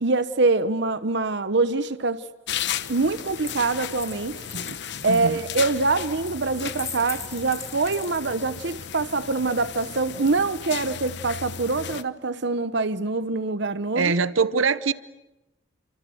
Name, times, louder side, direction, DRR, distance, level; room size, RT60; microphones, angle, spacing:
voice 1, 0.0-2.2 2.9-4.4 5.0-14.1, right 3 dB, 60° right, 1.0 m, -24 dB
sound 1, 2.5-12.0, left 8 dB, 60° left, 1.0 m, -35 dB
Coin (dropping), 3.4-8.7 9.8-10.5, left 5 dB, 15° left, 1.5 m, -40 dB
voice 2, 5.1-5.4 13.9-14.9, right 4 dB, 85° right, 0.9 m, -23 dB
29.5 x 25.5 x 7.9 m
head